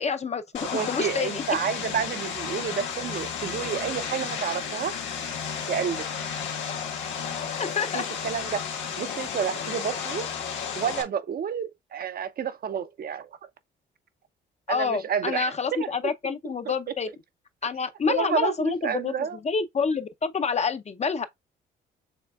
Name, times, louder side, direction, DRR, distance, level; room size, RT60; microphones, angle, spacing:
voice 1, 0.0-1.4 7.6-8.0 14.7-17.1 17.6-19.1 19.4-21.3, left 5 dB, 35° left, 0.6 m, -28 dB
Vehicle, 0.5-11.0, left 7 dB, 70° left, 1.5 m, -33 dB
voice 2, 0.7-4.9 5.7-6.1 7.9-10.3 10.5-13.3 14.7-15.5 15.8-16.7 18.1-19.4, right 7 dB, 50° right, 0.6 m, -30 dB
6.4 x 3.3 x 2.3 m
cardioid pair, 90°, 20 cm